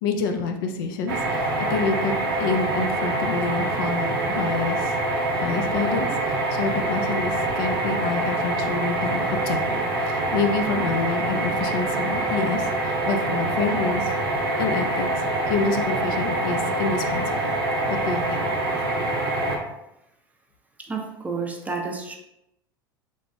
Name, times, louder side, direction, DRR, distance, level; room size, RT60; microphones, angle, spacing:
voice 1, 0.0-4.9 5.4-9.8 10.1-14.1 14.6-15.1 15.5-17.5 17.9-18.5, left 4 dB, 65° left, 5 dB, 0.4 m, -28 dB
sound 1, 1.1-19.6, right 2 dB, 80° right, 0.6 m, -25 dB
voice 2, 20.8-22.2, right 4 dB, 10° right, 2 dB, 0.4 m, -30 dB
3.1 x 2.1 x 2.6 m, 0.84 s
hypercardioid pair, 85°, 12 cm